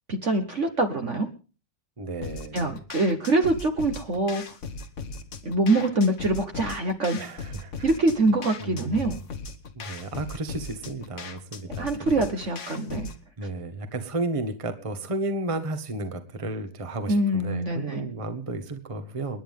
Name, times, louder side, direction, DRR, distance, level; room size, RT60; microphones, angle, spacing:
voice 1, 0.1-1.3 2.5-4.4 5.4-7.2 7.8-9.2 11.8-13.1 17.1-18.1, right 2 dB, 40° right, 6 dB, 1.6 m, -24 dB
voice 2, 2.0-2.7 7.2-7.9 8.6-8.9 9.7-11.9 12.2-12.3 13.4-19.4, right 2 dB, 20° right, 8 dB, 1.4 m, -33 dB
sound 1, 2.2-13.2, left 4 dB, 45° left, 1.4 m, -39 dB
29.5 x 10.0 x 3.6 m, 0.35 s
omnidirectional pair, 2.0 m